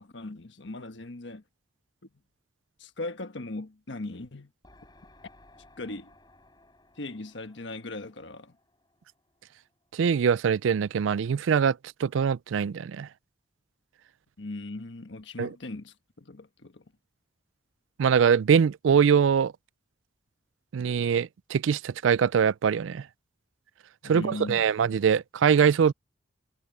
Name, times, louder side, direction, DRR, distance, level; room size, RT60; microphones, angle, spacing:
voice 1, 0.0-1.4 2.8-4.5 5.8-6.1 7.0-8.5 14.4-16.8 24.0-24.7, left 2 dB, 75° left, 1.3 m, -39 dB
sound 1, 4.6-10.2, left 2 dB, 20° left, 5.8 m, -59 dB
voice 2, 9.9-13.1 15.4-15.5 18.0-19.5 20.7-23.0 24.0-25.9, right 7 dB, 90° right, 0.4 m, -23 dB
head